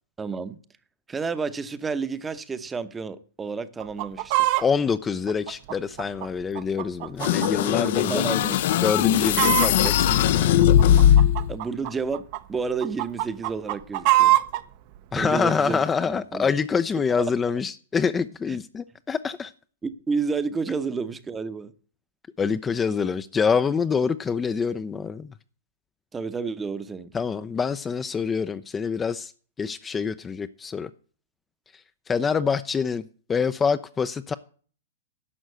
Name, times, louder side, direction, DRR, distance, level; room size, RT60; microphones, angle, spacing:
voice 1, 0.2-0.6 1.1-4.6 7.6-8.6 9.4-9.5 11.5-14.4 15.1-15.8 16.3-16.5 18.5-18.6 19.8-21.7 26.1-27.1, right 5 dB, 15° right, 0.9 m, -30 dB
Chicken rooster, 3.8-4.7 5.3-7.5 7.8-7.9 8.5-8.8 9.0-9.9 10.6-12.4 12.8-14.6 15.3-15.4, right 17 dB, 45° right, 0.8 m, -23 dB
voice 2, 4.6-8.2 8.8-10.5 11.1-11.2 15.1-19.5 22.4-25.3 27.1-29.3 29.6-30.9 31.7-33.0 33.3-34.3, left 6 dB, 15° left, 0.5 m, -26 dB
sound 1, 7.2-11.5, left 10 dB, 55° left, 0.7 m, -19 dB
11.0 x 6.3 x 8.0 m
hypercardioid pair, 110°, 0 cm